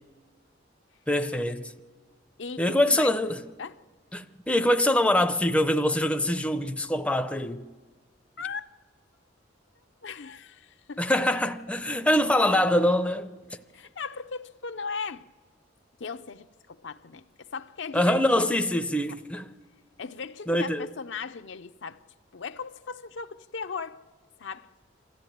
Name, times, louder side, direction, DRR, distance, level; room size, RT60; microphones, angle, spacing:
voice 1, 1.1-1.7 2.6-3.4 4.1-7.6 11.0-13.3 17.9-19.5 20.5-20.9, left 1 dB, 5° left, 0.6 m, -24 dB
voice 2, 2.4-3.1 3.6-3.8 8.4-8.7 10.0-11.0 13.7-15.2 16.0-18.5 19.1-19.2 20.0-22.0 22.3-24.0 24.4-24.7, left 5 dB, 70° left, 0.6 m, -37 dB
28.0 x 13.5 x 9.2 m
head